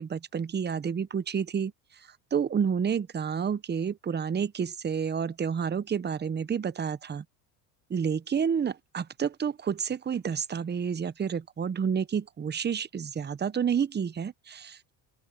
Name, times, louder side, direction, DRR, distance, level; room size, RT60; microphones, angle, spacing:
voice 1, 0.0-1.7 2.3-7.2 7.9-14.9, right 7 dB, 20° right, 0.9 m, -29 dB
open air
supercardioid pair, 95°, 49 cm